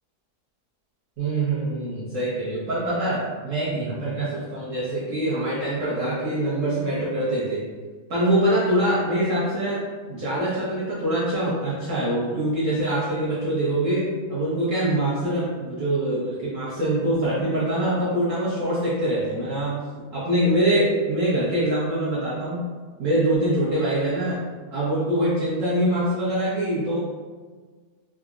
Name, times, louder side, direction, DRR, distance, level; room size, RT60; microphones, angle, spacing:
voice 1, 1.2-7.6 8.1-9.8 10.1-19.8 20.1-22.6 23.0-24.4 24.7-27.0, right 1 dB, 60° right, -9 dB, 0.9 m, -24 dB
3.6 x 2.0 x 2.4 m, 1.5 s
omnidirectional pair, 1.9 m